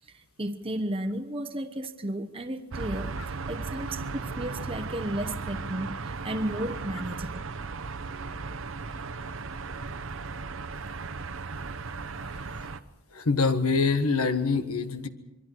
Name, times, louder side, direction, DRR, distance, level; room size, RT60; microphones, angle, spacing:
voice 1, 0.1-7.4 10.3-10.4 10.9-11.0, right 1 dB, 25° right, 6 dB, 1.0 m, -34 dB
sound 1, 2.7-12.8, right 4 dB, 60° right, 0.9 m, -36 dB
voice 2, 13.1-15.1, left 4 dB, 80° left, 9 dB, 1.5 m, -25 dB
27.0 x 23.0 x 4.7 m, 0.90 s
head